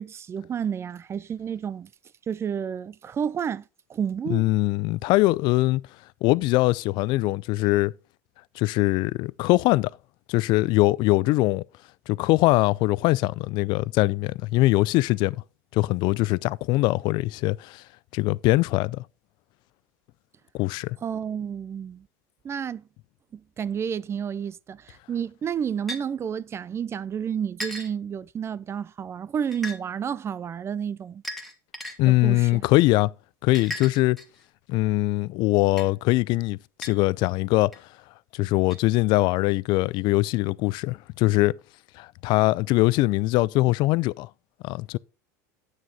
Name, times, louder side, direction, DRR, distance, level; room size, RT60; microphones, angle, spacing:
voice 1, 0.0-1.9 2.3-3.6 3.9-4.5 21.0-22.1 22.4-22.8 23.3-31.2 32.1-32.7, right 8 dB, 30° right, 0.4 m, -30 dB
voice 2, 4.3-5.8 6.2-7.9 8.6-9.9 10.3-11.6 12.1-15.4 15.7-17.8 18.1-19.0 20.5-21.0 32.0-33.1 33.4-34.2 34.7-37.7 38.3-41.6 42.0-44.3 44.6-45.0, left 20 dB, 55° left, 0.4 m, -22 dB
sound 1, 25.9-26.0 27.6-27.9 29.5-29.8 31.2-31.9 33.5-34.4 35.8-35.9 36.8-36.9 37.7-37.8 38.7-38.8, left 1 dB, ahead, 1.8 m, -35 dB
9.1 x 6.4 x 4.0 m
hypercardioid pair, 95°, 9 cm